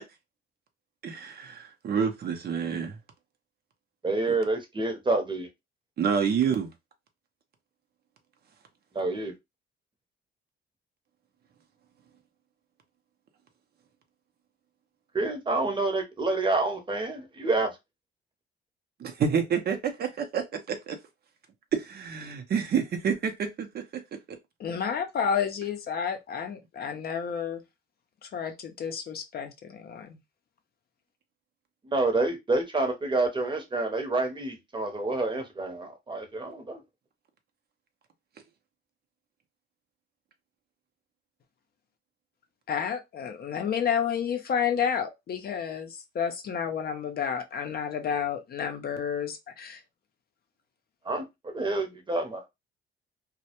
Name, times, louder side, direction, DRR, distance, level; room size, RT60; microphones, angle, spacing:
voice 1, 1.0-3.0 4.3-4.4 6.0-6.7 19.0-21.0 21.9-24.0, right 7 dB, 55° right, 0.6 m, -28 dB
voice 2, 4.0-5.5 8.9-9.3 15.1-17.7 31.8-36.8 51.0-52.4, right 2 dB, 25° right, 0.8 m, -28 dB
voice 3, 24.6-27.6 28.2-30.2 42.7-49.8, left 7 dB, 50° left, 0.5 m, -30 dB
2.1 x 2.1 x 2.8 m
cardioid pair, 90°, 20 cm